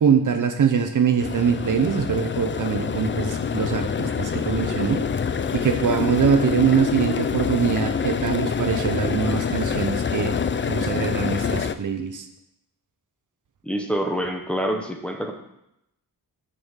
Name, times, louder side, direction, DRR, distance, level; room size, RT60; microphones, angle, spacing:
voice 1, 0.0-5.1 5.5-10.3 10.7-12.3, right 7 dB, 55° right, 7 dB, 0.8 m, -23 dB
sound 1, 1.2-11.7, left 6 dB, 35° left, 0.4 m, -26 dB
voice 2, 13.6-15.3, equal, 5° left, 2 dB, 1.0 m, -26 dB
6.8 x 5.5 x 7.3 m, 0.81 s
wide cardioid pair, 145°, 36 cm